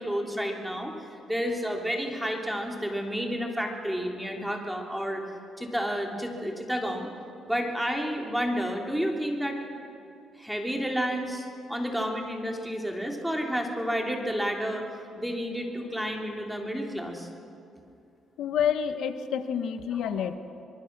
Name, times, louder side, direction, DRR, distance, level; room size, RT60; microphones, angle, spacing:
voice 1, 0.0-5.2 5.6-7.1 7.5-9.6 10.4-14.8 15.1-17.3 20.2-20.4, equal, 5° right, 2 dB, 3.2 m, -30 dB
voice 2, 18.4-20.4, left 8 dB, 80° left, 10 dB, 1.2 m, -28 dB
24.0 x 23.0 x 6.1 m, 2.6 s
cardioid pair, 90°, 0 cm